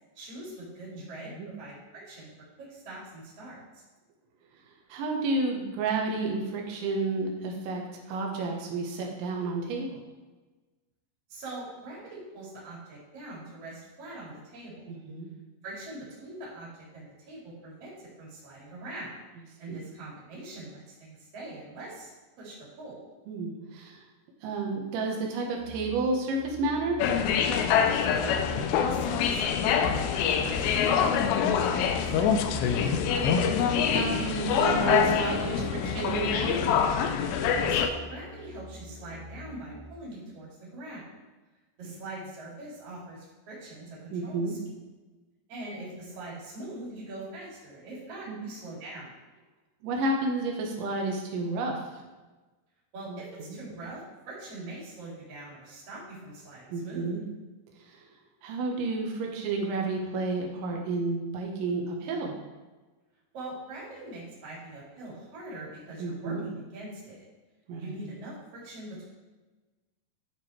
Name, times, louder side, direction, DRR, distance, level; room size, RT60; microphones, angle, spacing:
voice 1, 0.2-2.3 2.6-3.8 11.3-14.9 15.6-19.2 19.6-22.1 22.4-23.0 28.2-28.5 28.9-32.3 37.7-41.1 41.8-44.6 45.5-49.1 52.9-57.2 63.3-67.3 67.8-69.1, right 2 dB, 40° right, -6 dB, 3.5 m, -43 dB
voice 2, 0.9-1.5 4.9-7.8 8.1-10.0 14.9-15.3 19.7-19.9 23.3-24.1 24.4-27.0 29.9-30.0 32.8-32.9 33.4-36.8 44.1-44.6 48.3-48.4 49.8-51.8 53.1-53.6 56.7-57.2 57.8-58.0 58.4-62.3 66.0-66.4 67.7-68.0, right 3 dB, 85° right, 0 dB, 3.7 m, -31 dB
sound 1, 25.6-39.9, left 1 dB, 55° left, 1.8 m, -45 dB
sound 2, 27.0-37.9, left 7 dB, 80° left, 2.7 m, -25 dB
12.5 x 4.5 x 4.4 m, 1.2 s
omnidirectional pair, 5.1 m